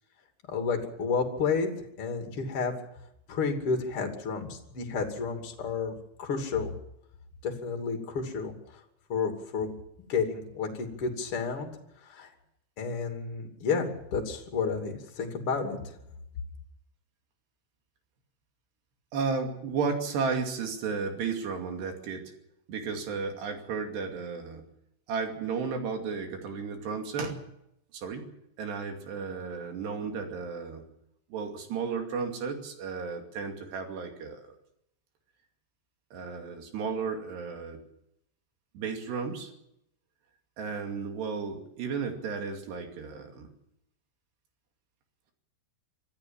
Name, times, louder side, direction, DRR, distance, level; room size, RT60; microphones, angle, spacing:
voice 1, 0.5-1.7 2.0-2.7 3.3-5.9 6.2-6.7 7.4-8.5 9.1-9.7 10.1-11.7 12.1-12.3 12.8-16.0, left 5 dB, 35° left, 4 dB, 3.1 m, -31 dB
voice 2, 19.1-22.3 22.7-24.7 25.1-27.4 27.9-28.3 28.6-30.9 31.3-34.5 36.1-37.8 38.7-39.5 40.6-43.5, right 5 dB, 70° right, 4 dB, 4.6 m, -33 dB
25.5 x 14.5 x 7.3 m, 0.78 s
omnidirectional pair, 5.1 m